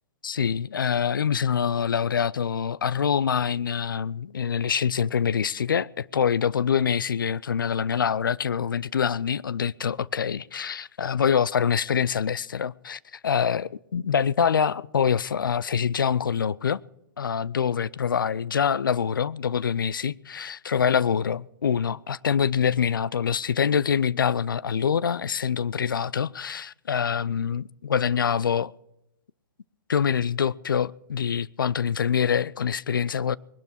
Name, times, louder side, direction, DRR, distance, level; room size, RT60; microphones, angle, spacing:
voice 1, 0.2-16.8 17.2-28.7 29.9-33.4, left 7 dB, 75° left, 0.6 m, -25 dB
20.5 x 12.0 x 4.4 m
hypercardioid pair, 125°, 11 cm